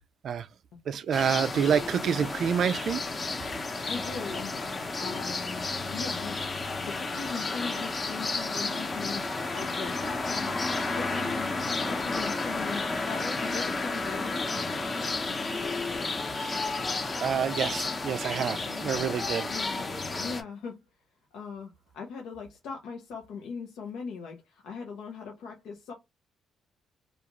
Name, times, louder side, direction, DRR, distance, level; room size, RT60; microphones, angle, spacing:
voice 1, 0.9-3.0 16.3-16.6 17.2-19.5, right 7 dB, 60° right, 0.3 m, -28 dB
sound 1, 1.1-20.4, left 3 dB, 30° left, 0.7 m, -32 dB
voice 2, 3.9-4.5 4.8-10.6 10.9-14.5 18.6-19.1 19.5-19.9 20.2-20.8 21.3-25.9, left 5 dB, 85° left, 0.6 m, -40 dB
2.4 x 2.4 x 3.0 m
cardioid pair, 100°, 0 cm